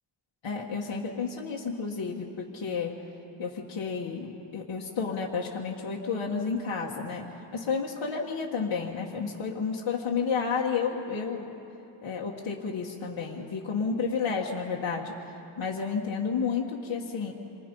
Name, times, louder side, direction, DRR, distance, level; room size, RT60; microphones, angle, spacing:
voice 1, 0.4-3.0 3.4-7.3 7.5-11.6 12.0-15.1 15.6-17.3, left 5 dB, 65° left, -3 dB, 1.6 m, -31 dB
27.5 x 24.0 x 5.4 m, 3.0 s
wide cardioid pair, 165°, 49 cm